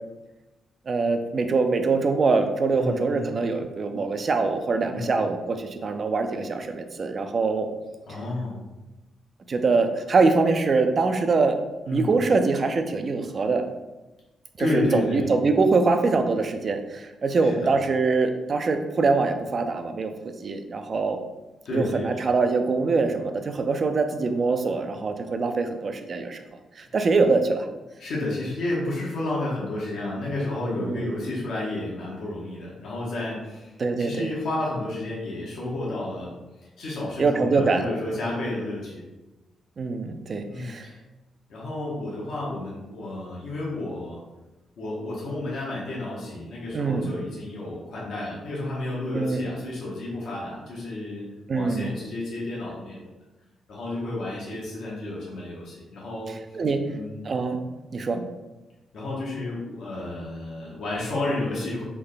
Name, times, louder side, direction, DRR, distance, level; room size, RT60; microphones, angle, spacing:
voice 1, 0.9-7.7 9.5-11.6 11.9-13.6 14.6-20.1 20.4-21.2 21.7-26.4 26.8-27.7 30.8-31.1 33.8-34.3 37.2-37.8 39.8-40.9 46.7-47.1 49.1-49.4 51.5-51.9 56.6-56.8 57.2-57.6 57.9-58.2, right 4 dB, 45° right, 6 dB, 0.4 m, -23 dB
voice 2, 2.7-3.3 4.9-5.1 8.1-8.6 11.9-12.1 14.6-15.3 17.4-17.7 21.6-22.3 28.0-39.0 40.5-41.0 41.5-44.2 44.8-51.2 51.5-53.1 53.7-57.3 58.9-61.8, left 2 dB, 70° left, -5 dB, 1.0 m, -31 dB
3.4 x 2.1 x 3.8 m, 1.1 s
cardioid pair, 90°, 0 cm